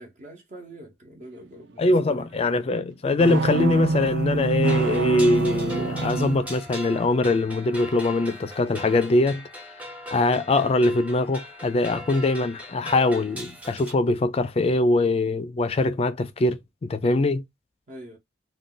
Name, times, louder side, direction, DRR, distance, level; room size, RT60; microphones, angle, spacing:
voice 1, 0.0-2.3 17.9-18.2, right 1 dB, 45° right, 0.8 m, -43 dB
voice 2, 1.8-9.5 10.1-17.4, left 2 dB, 35° left, 0.4 m, -22 dB
sound 1, 3.2-6.4, right 4 dB, 75° right, 0.4 m, -25 dB
sound 2, 4.6-13.9, equal, 10° right, 0.8 m, -40 dB
2.6 x 2.2 x 3.6 m
head